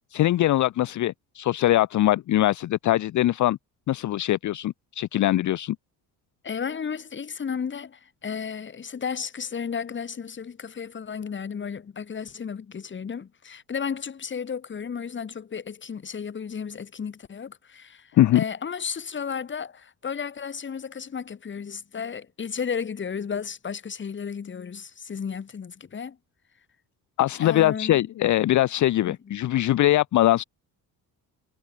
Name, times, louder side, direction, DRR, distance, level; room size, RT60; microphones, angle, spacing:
voice 1, 0.1-3.6 3.9-5.8 18.2-18.4 27.2-30.4, left 14 dB, 55° left, 0.6 m, -22 dB
voice 2, 6.4-26.2 27.4-28.1 29.0-29.1, left 6 dB, 30° left, 1.3 m, -33 dB
cardioid pair, 115°, 36 cm